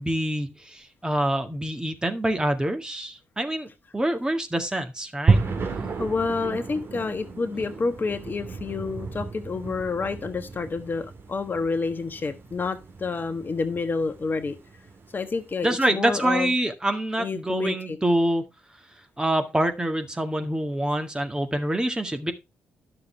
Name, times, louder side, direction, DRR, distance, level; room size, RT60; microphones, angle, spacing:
voice 1, 0.0-5.4 15.6-18.4 19.2-22.3, right 1 dB, 15° right, 1.9 m, -26 dB
sound 1, 5.3-15.5, right 4 dB, 50° right, 1.9 m, -31 dB
voice 2, 6.0-14.5 15.1-16.5 17.2-18.0, left 4 dB, 40° left, 1.2 m, -29 dB
11.5 x 6.8 x 3.4 m
hypercardioid pair, 45°, 5 cm